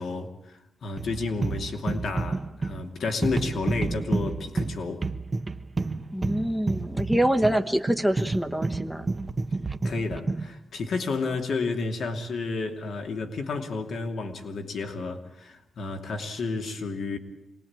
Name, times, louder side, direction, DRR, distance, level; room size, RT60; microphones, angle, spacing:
voice 1, 0.0-5.1 9.8-17.2, left 3 dB, 75° left, 2.8 m, -31 dB
sound 1, 1.0-10.5, right 3 dB, 30° right, 1.0 m, -30 dB
voice 2, 6.1-9.1, right 1 dB, ahead, 1.2 m, -25 dB
26.5 x 20.5 x 8.8 m
wide cardioid pair, 135°, 0 cm